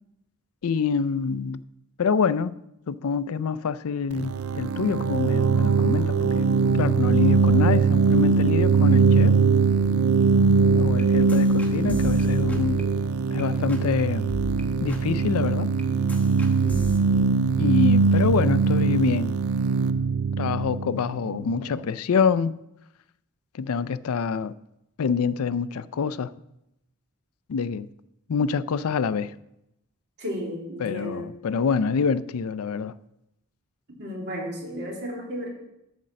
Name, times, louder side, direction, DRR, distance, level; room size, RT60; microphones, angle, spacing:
voice 1, 0.6-1.6 2.0-2.5 2.9-9.4 10.7-12.9 13.3-14.3 14.8-15.7 17.6-19.4 20.4-22.6 23.5-24.5 25.0-26.3 27.5-27.9 28.3-29.3 30.8-32.9, left 5 dB, 80° left, 0.4 m, -26 dB
sound 1, 4.1-21.7, right 5 dB, 75° right, 0.4 m, -21 dB
sound 2, 11.3-13.4 13.7-14.0 14.3-17.0, equal, 5° left, 1.2 m, -38 dB
voice 2, 30.2-31.3 34.0-35.5, equal, 50° right, 2.8 m, -33 dB
12.0 x 5.2 x 7.4 m
head